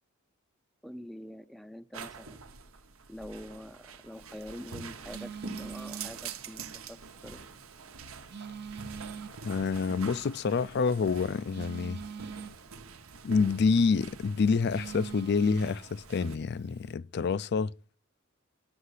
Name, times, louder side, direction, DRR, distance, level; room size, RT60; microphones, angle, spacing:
voice 1, 0.8-2.4 3.1-7.0 7.2-7.4, equal, ahead, 0.5 m, -45 dB
sound 1, 1.9-16.4, right 5 dB, 80° right, 1.0 m, -45 dB
Telephone, 4.1-16.9, right 6 dB, 55° right, 0.8 m, -46 dB
voice 2, 9.4-12.0 13.2-17.7, left 5 dB, 55° left, 0.4 m, -27 dB
9.7 x 6.5 x 8.2 m
head